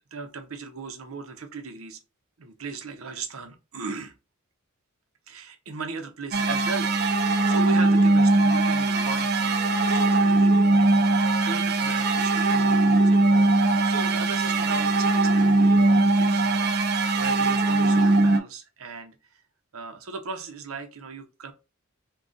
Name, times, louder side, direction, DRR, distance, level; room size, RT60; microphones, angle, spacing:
voice 1, 0.1-2.0 2.4-4.1 5.3-13.2 13.5-19.4 19.7-21.5, right 4 dB, 80° right, 6 dB, 0.8 m, -38 dB
sound 1, 6.3-18.4, right 2 dB, 50° right, 0.5 m, -21 dB
3.7 x 2.4 x 3.8 m, 0.30 s
head